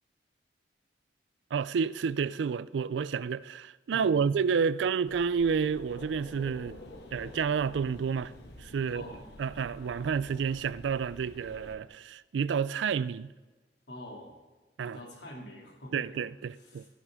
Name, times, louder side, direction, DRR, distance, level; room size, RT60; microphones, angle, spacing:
voice 1, 1.5-6.8 7.1-8.3 8.6-9.0 9.4-13.3 14.8-15.0 15.9-16.8, right 6 dB, 90° right, 0.4 m, -30 dB
voice 2, 3.9-4.2 8.8-9.2 13.9-14.3 14.8-16.2 16.5-16.9, left 1 dB, 85° left, 2.5 m, -46 dB
sound 1, 5.0-11.8, left 1 dB, 65° left, 1.4 m, -48 dB
13.5 x 11.0 x 3.6 m
head